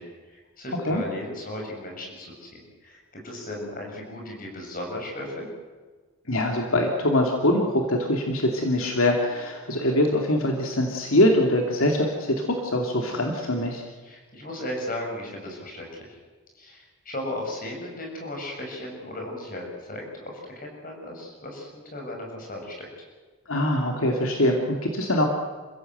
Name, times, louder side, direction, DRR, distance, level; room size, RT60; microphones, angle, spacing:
voice 1, 0.0-5.5 14.0-16.2 16.5-22.9, left 1 dB, 40° left, 0 dB, 6.9 m, -36 dB
voice 2, 6.3-13.8 23.5-25.3, left 1 dB, 75° left, 1 dB, 2.7 m, -23 dB
28.5 x 16.0 x 8.0 m, 1.4 s
head